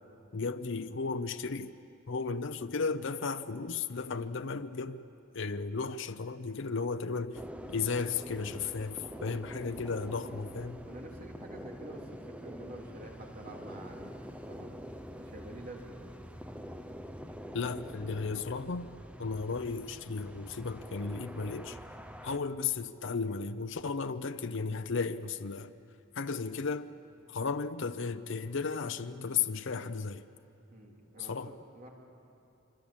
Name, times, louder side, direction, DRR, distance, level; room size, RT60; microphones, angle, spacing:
voice 1, 0.3-1.7 2.1-5.0 5.3-7.4 7.7-10.8 17.5-18.9 19.2-21.8 22.2-25.7 26.2-26.9 27.3-30.2 31.3-31.5, left 4 dB, 65° left, 0.7 m, -34 dB
sound 1, 7.3-22.4, equal, 5° right, 0.9 m, -45 dB
voice 2, 9.0-9.4 10.9-14.2 14.5-14.8 15.2-16.1 30.7-31.9, right 1 dB, 45° right, 3.4 m, -48 dB
25.5 x 25.5 x 8.7 m
head